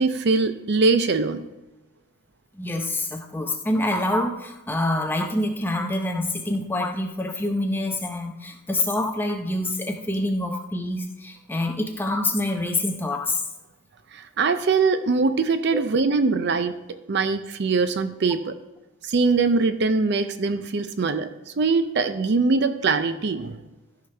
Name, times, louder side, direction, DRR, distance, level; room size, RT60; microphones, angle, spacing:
voice 1, 0.0-1.4 14.1-18.5 19.1-21.3 21.6-23.6, right 4 dB, 50° right, 11 dB, 0.5 m, -22 dB
voice 2, 2.6-13.4, left 1 dB, 10° left, 4 dB, 0.6 m, -26 dB
13.5 x 5.8 x 3.3 m, 0.99 s
head